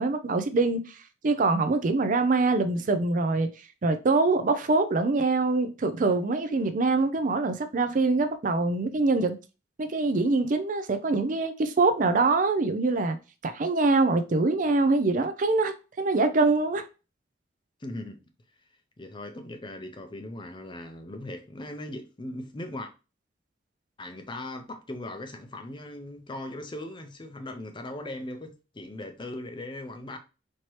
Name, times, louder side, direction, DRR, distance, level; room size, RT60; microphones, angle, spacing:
voice 1, 0.0-3.5 3.8-9.4 9.8-13.2 13.4-16.9, right 3 dB, 45° right, 0.5 m, -24 dB
voice 2, 17.8-18.2 19.0-22.9 24.0-30.2, left 1 dB, 25° left, 0.6 m, -39 dB
4.4 x 2.9 x 3.1 m
head